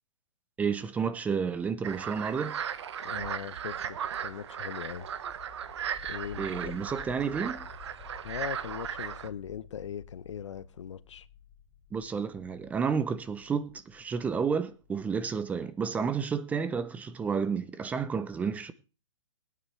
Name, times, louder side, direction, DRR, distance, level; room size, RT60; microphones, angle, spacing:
voice 1, 0.6-2.6 6.4-7.6 11.9-18.7, right 6 dB, 10° right, 0.6 m, -31 dB
sound 1, 1.8-9.3, right 8 dB, 60° right, 1.1 m, -37 dB
voice 2, 3.0-5.1 6.0-6.6 8.2-11.3, left 8 dB, 70° left, 0.8 m, -40 dB
sound 2, 4.9-15.6, left 7 dB, 25° left, 2.9 m, -51 dB
19.5 x 9.2 x 3.2 m
hypercardioid pair, 145°, 16 cm